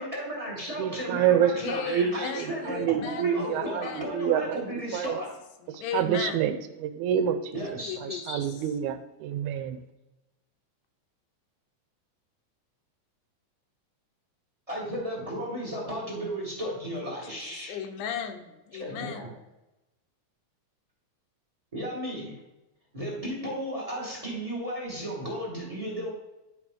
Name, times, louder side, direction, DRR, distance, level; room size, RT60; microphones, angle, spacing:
voice 1, 0.0-5.3 7.5-8.4 14.7-17.8 18.8-19.3 21.7-22.4 22.9-26.1, equal, 15° right, -4 dB, 1.1 m, -34 dB
voice 2, 0.8-4.6 4.9-5.2 5.7-7.6 8.0-9.8, right 9 dB, 85° right, 10 dB, 2.0 m, -28 dB
voice 3, 1.6-4.1 4.9-5.2 5.6-6.4 7.9-8.2 17.0-17.4 17.7-19.3, left 8 dB, 85° left, 6 dB, 2.3 m, -36 dB
11.0 x 4.7 x 3.6 m, 0.98 s
omnidirectional pair, 3.5 m